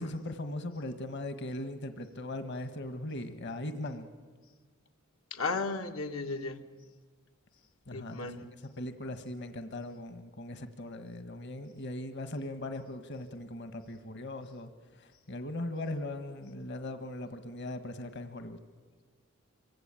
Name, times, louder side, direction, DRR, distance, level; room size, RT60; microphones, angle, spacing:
voice 1, 0.0-4.1 7.9-8.4 8.8-18.6, left 1 dB, 60° left, 9 dB, 1.5 m, -39 dB
voice 2, 5.3-6.6 7.9-8.4, left 3 dB, 90° left, 5 dB, 2.0 m, -35 dB
27.0 x 24.5 x 9.1 m, 1.4 s
head